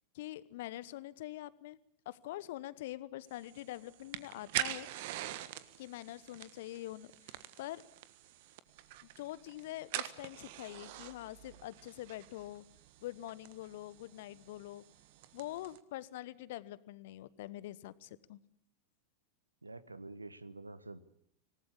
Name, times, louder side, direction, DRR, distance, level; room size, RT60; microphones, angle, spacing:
voice 1, 0.1-1.8 2.0-4.9 5.8-7.8 9.0-12.6 13.0-14.8 15.3-18.4, left 15 dB, 55° left, 18 dB, 1.1 m, -45 dB
sound 1, 3.3-15.8, right 14 dB, 50° right, 1.5 m, -45 dB
voice 2, 19.6-21.0, right 2 dB, 80° right, 17 dB, 1.3 m, -47 dB
26.0 x 19.0 x 8.6 m, 0.70 s
figure-of-eight pair, 90°, 0 cm